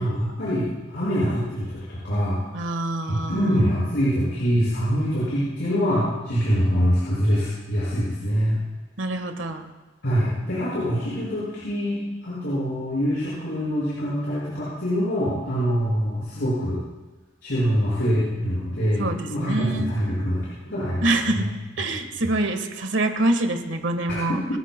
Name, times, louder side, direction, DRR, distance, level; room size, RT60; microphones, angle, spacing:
voice 1, 0.0-2.4 3.0-8.6 10.0-16.8 17.4-20.4 20.6-21.5 21.8-21.9 24.1-24.2, equal, 75° left, -9 dB, 5.7 m, -24 dB
voice 2, 2.5-3.6 9.0-9.7 19.0-19.9 21.0-21.5 21.8-24.4, right 2 dB, 90° right, 7 dB, 1.4 m, -25 dB
27.5 x 14.0 x 2.2 m, 1.2 s
head